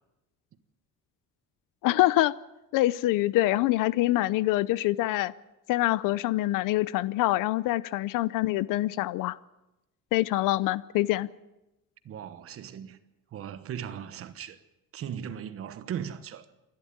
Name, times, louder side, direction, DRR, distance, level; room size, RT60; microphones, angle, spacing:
voice 1, 1.8-2.3 2.7-5.3 5.7-9.4 10.1-11.3, left 16 dB, 80° left, 0.7 m, -25 dB
voice 2, 12.0-13.0 13.3-14.6 14.9-16.5, right 9 dB, 45° right, 1.1 m, -38 dB
28.5 x 12.0 x 8.7 m
cardioid pair, 175°, 32 cm